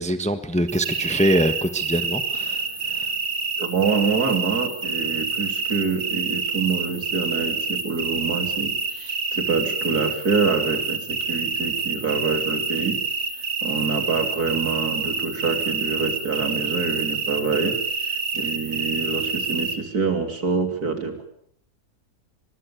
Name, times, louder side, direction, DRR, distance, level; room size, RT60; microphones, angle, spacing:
voice 1, 0.0-3.1, right 1 dB, 5° left, 10 dB, 1.1 m, -24 dB
sound 1, 0.7-19.8, right 4 dB, 55° right, 2.5 m, -27 dB
voice 2, 3.6-13.0 13.4-21.3, right 4 dB, 70° right, 6 dB, 3.6 m, -26 dB
24.0 x 21.0 x 7.1 m, 0.65 s
omnidirectional pair, 1.7 m